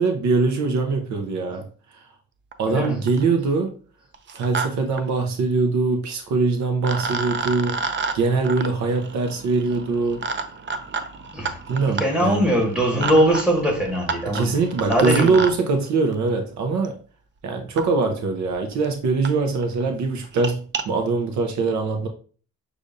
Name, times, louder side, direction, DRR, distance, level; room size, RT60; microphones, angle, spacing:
voice 1, 0.0-1.7 1.9-2.0 2.6-3.7 4.3-7.8 8.1-10.2 11.7-12.5 14.3-17.0 17.4-22.1, right 4 dB, 70° right, 0.8 m, -22 dB
sound 1, 2.5-2.6 2.8-3.3 4.1-4.7 4.9-5.0 6.3-6.4 6.8-15.5 16.8-16.9 17.8-17.9 18.5-18.6 18.8-18.9 19.2-19.3 19.6-19.8 20.2-20.8, right 4 dB, 40° right, 0.5 m, -30 dB
voice 2, 2.7-3.0 11.3-11.6 12.0-14.5 14.9-15.5, equal, 5° right, 1.7 m, -21 dB
6.4 x 2.6 x 2.6 m
cardioid pair, 90°, 30 cm